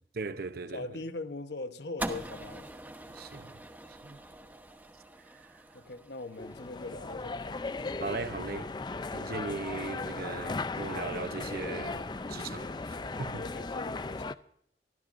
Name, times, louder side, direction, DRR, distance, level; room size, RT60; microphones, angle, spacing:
voice 1, 0.2-0.9 3.1-3.6 3.9-4.2 5.3-5.6 8.0-8.7 9.1-12.7 13.2-13.4, right 4 dB, 55° right, 0.8 m, -38 dB
voice 2, 0.7-2.7 5.7-7.5 13.3-14.3, left 3 dB, 65° left, 1.0 m, -41 dB
sound 1, 2.0-8.3, right 1 dB, 10° right, 1.1 m, -44 dB
sound 2, 6.4-14.3, left 3 dB, 25° left, 0.5 m, -37 dB
24.0 x 13.5 x 2.6 m
head